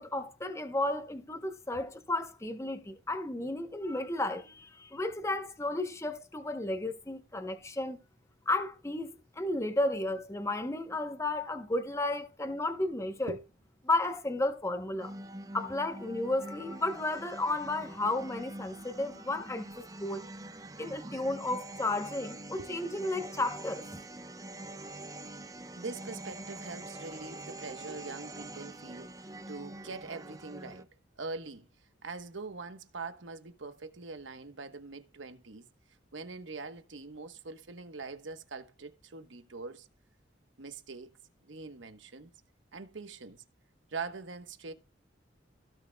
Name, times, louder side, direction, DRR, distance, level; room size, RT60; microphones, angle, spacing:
voice 1, 0.0-8.0 8.5-13.3 13.8-15.1 15.5-20.2 20.8-24.0, left 2 dB, 15° left, 0.8 m, -33 dB
sound 1, 15.0-30.8, right 1 dB, 20° right, 0.6 m, -45 dB
voice 2, 25.7-30.9 31.2-31.7 32.0-35.7 36.1-39.9 40.6-41.1 41.4-42.3 42.7-43.4 43.9-44.7, right 4 dB, 80° right, 1.1 m, -43 dB
16.5 x 6.4 x 2.2 m
head